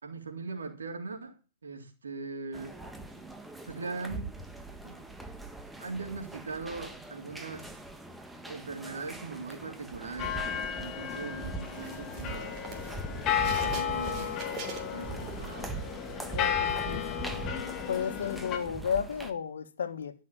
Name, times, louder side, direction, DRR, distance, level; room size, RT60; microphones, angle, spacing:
voice 1, 0.0-2.8 3.6-4.3 4.8-5.1 5.8-7.8 8.5-10.4 10.8-12.7 13.4-14.5 14.9-15.7, right 4 dB, 85° right, 3.4 m, -40 dB
sound 1, 2.5-19.3, right 2 dB, 5° right, 1.4 m, -42 dB
sound 2, 10.2-18.6, left 8 dB, 30° left, 2.2 m, -33 dB
sound 3, 11.7-15.9 16.3-18.6, right 7 dB, 30° right, 3.4 m, -45 dB
voice 2, 16.3-17.2 17.9-20.1, left 7 dB, 75° left, 1.6 m, -33 dB
13.5 x 6.3 x 8.9 m
hypercardioid pair, 125°, 0 cm